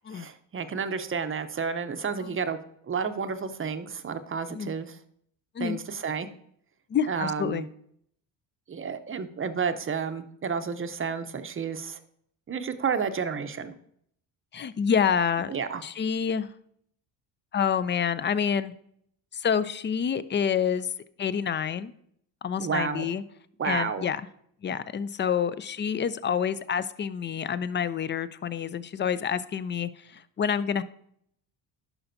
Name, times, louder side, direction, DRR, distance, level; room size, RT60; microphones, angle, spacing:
voice 1, 0.1-2.6 2.9-5.0 5.6-6.3 7.1-7.7 8.7-12.0 12.5-13.7 15.5-15.8 22.6-23.1 23.6-24.1, right 6 dB, 30° right, 10 dB, 0.7 m, -31 dB
voice 2, 6.9-7.7 14.5-15.5 15.8-16.5 17.5-18.7 19.3-20.9 21.2-21.9 22.4-23.2 23.6-24.2 24.6-30.8, left 7 dB, 25° left, 16 dB, 0.4 m, -28 dB
11.0 x 5.7 x 2.6 m, 0.67 s
cardioid pair, 90°, 45 cm